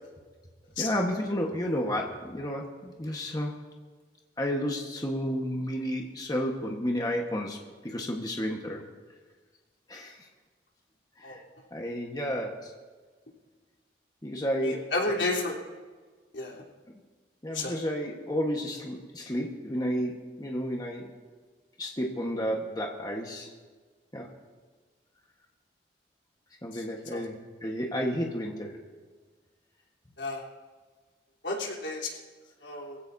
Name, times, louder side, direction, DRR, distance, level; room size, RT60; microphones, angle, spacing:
voice 1, 0.8-3.5 4.4-7.6 7.8-8.8 9.9-10.1 11.2-11.4 11.7-12.7 14.2-14.8 17.4-21.1 21.8-23.5 24.1-24.3 26.6-27.3 27.6-28.7, equal, 20° left, 1 dB, 1.3 m, -31 dB
voice 2, 14.6-15.6 16.3-16.6 17.5-17.8 26.7-26.8 27.1-27.2 30.2-30.4 31.4-32.1 32.6-33.0, left 2 dB, 85° left, -3 dB, 3.5 m, -31 dB
23.5 x 16.0 x 2.7 m, 1.4 s
head